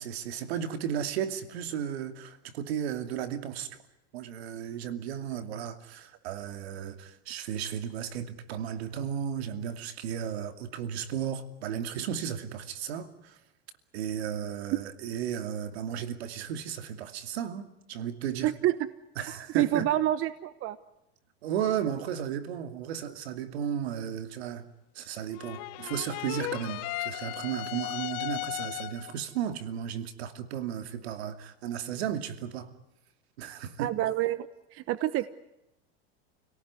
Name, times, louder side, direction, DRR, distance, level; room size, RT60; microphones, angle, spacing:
voice 1, 0.0-3.8 4.1-13.4 13.9-18.5 19.2-19.9 21.4-24.7 24.9-32.7 33.4-33.9, right 9 dB, 80° right, 2.6 m, -34 dB
voice 2, 18.4-18.7 19.5-20.8 33.8-35.3, right 14 dB, 45° right, 1.1 m, -27 dB
sound 1, 25.3-29.2, left 21 dB, 55° left, 1.1 m, -36 dB
29.5 x 18.0 x 9.7 m
supercardioid pair, 115°, 31 cm